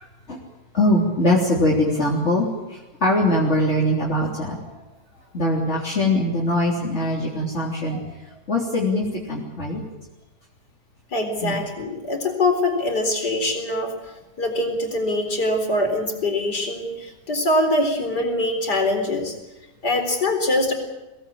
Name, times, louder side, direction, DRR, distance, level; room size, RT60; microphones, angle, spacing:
voice 1, 0.7-2.5 3.0-4.6 5.3-8.0 8.5-9.8 11.4-11.6, left 1 dB, 40° left, -4 dB, 3.8 m, -21 dB
voice 2, 11.1-14.0 14.4-19.4 19.8-20.7, left 1 dB, 80° left, 4 dB, 4.7 m, -23 dB
24.0 x 18.5 x 8.7 m, 1.1 s
omnidirectional pair, 1.8 m